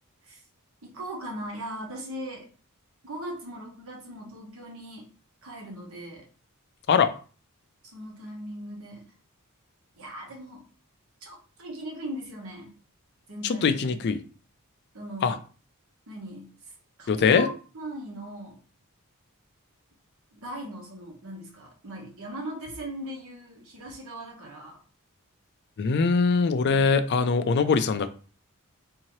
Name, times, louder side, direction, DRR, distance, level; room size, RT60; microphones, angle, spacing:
voice 1, 0.8-2.5 3.0-5.1 5.4-6.3 7.8-9.1 9.9-10.6 11.2-12.7 13.3-13.8 14.9-15.4 16.1-16.5 17.0-18.6 20.3-24.8, right 1 dB, 65° right, 0 dB, 1.1 m, -39 dB
voice 2, 13.4-14.2 15.2-15.3 17.1-17.5 25.8-28.1, left 5 dB, 50° left, 10 dB, 0.4 m, -22 dB
3.7 x 2.8 x 3.0 m, 0.38 s
head